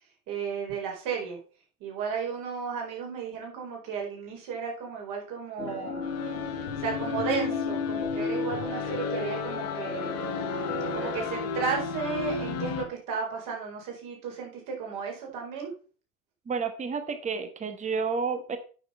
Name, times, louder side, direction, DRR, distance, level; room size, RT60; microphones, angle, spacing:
voice 1, 0.3-1.4 1.8-6.0 6.8-10.2 10.9-15.7, right 6 dB, 45° right, 1 dB, 4.6 m, -34 dB
sound 1, 5.6-11.3, left 4 dB, 80° left, 1.9 m, -33 dB
sound 2, 6.0-12.9, left 5 dB, 35° left, 1.5 m, -35 dB
voice 2, 16.5-18.6, right 5 dB, 15° right, 9 dB, 1.3 m, -30 dB
8.9 x 6.4 x 5.5 m, 0.38 s
figure-of-eight pair, 75°, 42 cm